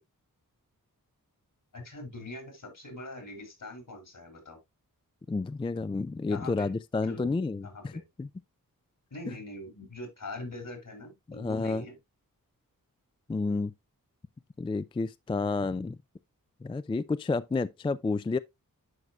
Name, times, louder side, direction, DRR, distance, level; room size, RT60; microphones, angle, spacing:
voice 1, 1.7-4.6 6.3-6.7 7.0-7.3 7.6-8.0 9.1-12.0, left 2 dB, 65° left, 3.9 m, -42 dB
voice 2, 5.3-7.9 8.2-8.3 11.3-11.8 13.3-13.7 14.6-16.0 16.6-18.4, left 3 dB, 15° left, 0.3 m, -30 dB
11.0 x 4.7 x 2.3 m
cardioid pair, 60°, 35 cm